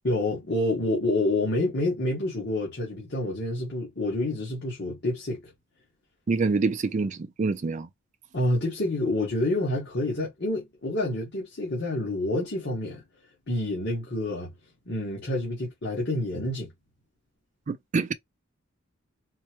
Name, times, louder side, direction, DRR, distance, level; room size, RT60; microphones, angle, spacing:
voice 1, 0.0-5.4 8.3-13.0 13.5-14.5 14.8-16.7, left 1 dB, 55° left, 1.7 m, -28 dB
voice 2, 6.3-7.9 17.7-18.1, right 4 dB, 35° right, 0.3 m, -26 dB
4.3 x 2.1 x 3.0 m
head